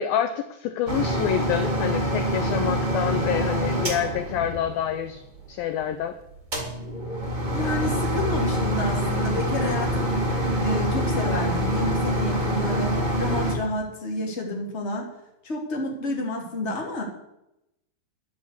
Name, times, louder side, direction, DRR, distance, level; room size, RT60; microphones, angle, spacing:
voice 1, 0.0-5.2 5.5-6.2, left 10 dB, 80° left, 10 dB, 2.1 m, -27 dB
sound 1, 0.9-5.1 6.4-13.6, equal, 20° right, 1.1 m, -25 dB
voice 2, 7.5-10.1 10.6-15.1 15.4-17.0, left 2 dB, 20° left, 0 dB, 2.3 m, -30 dB
11.5 x 10.5 x 8.2 m, 0.86 s
omnidirectional pair, 5.1 m